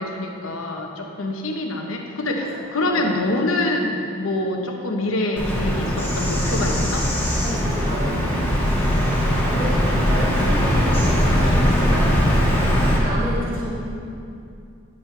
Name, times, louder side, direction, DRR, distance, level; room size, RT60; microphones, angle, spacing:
voice 1, 0.0-7.1 10.4-10.6 12.7-13.0, left 2 dB, 85° left, 2 dB, 1.0 m, -25 dB
Bird vocalization bird call bird song, 5.4-13.0, equal, 10° left, 1.4 m, -20 dB
voice 2, 7.4-12.1 13.0-13.7, right 1 dB, 45° right, -8 dB, 2.0 m, -31 dB
9.9 x 9.5 x 3.3 m, 2.5 s
head